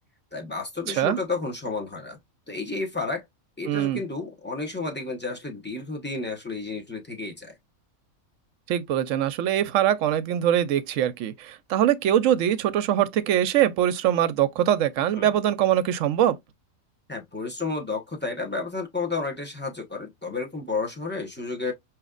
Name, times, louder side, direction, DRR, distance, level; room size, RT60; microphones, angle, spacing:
voice 1, 0.3-2.2 2.5-3.2 3.6-7.5 15.2-15.3 17.1-21.7, left 3 dB, 10° left, 0.8 m, -31 dB
voice 2, 0.9-1.2 3.6-4.0 8.7-16.4, right 11 dB, 70° right, 0.9 m, -23 dB
5.0 x 3.0 x 2.3 m
omnidirectional pair, 1.5 m